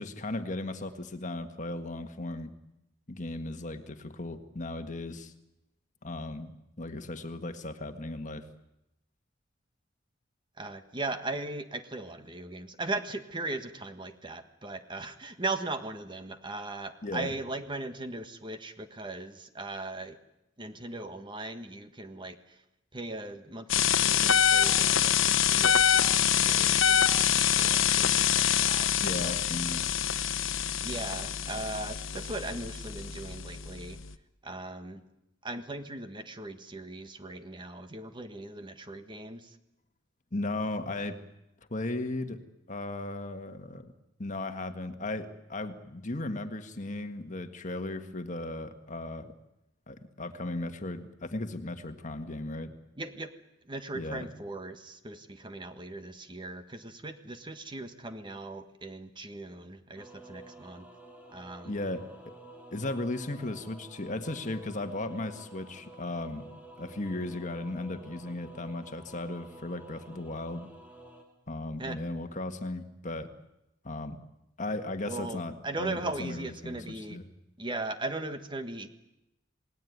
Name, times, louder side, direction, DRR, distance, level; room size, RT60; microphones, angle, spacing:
voice 1, 0.0-2.5 3.1-5.3 6.0-6.5 6.8-8.4 17.0-17.3 29.0-29.9 40.3-41.2 41.7-42.4 42.7-43.9 44.2-49.3 49.9-52.7 53.9-54.3 61.7-62.1 62.7-66.5 66.8-70.7 71.5-73.3 73.8-74.2 74.6-77.2, left 2 dB, 40° left, 8 dB, 1.7 m, -36 dB
voice 2, 10.6-20.2 20.6-22.6 22.9-29.4 30.8-34.0 34.4-35.0 35.4-39.6 53.0-53.3 53.6-60.8 61.3-61.7 71.8-72.0 75.0-77.2 77.6-78.9, right 2 dB, 25° right, 9 dB, 1.5 m, -38 dB
sound 1, 23.7-34.1, left 9 dB, 80° left, 1.1 m, -25 dB
sound 2, 59.9-71.2, right 1 dB, 10° right, 4.2 m, -51 dB
28.0 x 19.0 x 9.4 m, 0.88 s
head